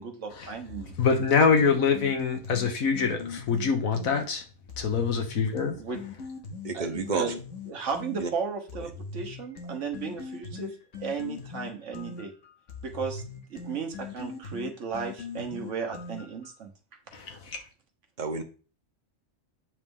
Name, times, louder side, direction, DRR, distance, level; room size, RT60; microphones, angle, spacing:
voice 1, 0.0-1.0 5.8-6.0 6.7-7.3 7.7-12.3 12.8-13.2 13.5-16.7, right 5 dB, 65° right, 1.5 m, -35 dB
sound 1, 0.7-4.2 4.7-8.2 8.7-16.5, left 4 dB, 65° left, 1.6 m, -40 dB
voice 2, 1.0-4.4 4.8-5.8 17.1-17.6, left 5 dB, 85° left, 1.6 m, -24 dB
voice 3, 6.6-7.3 8.2-8.3 18.2-18.4, right 4 dB, 40° right, 1.0 m, -30 dB
8.1 x 3.3 x 5.3 m
omnidirectional pair, 1.4 m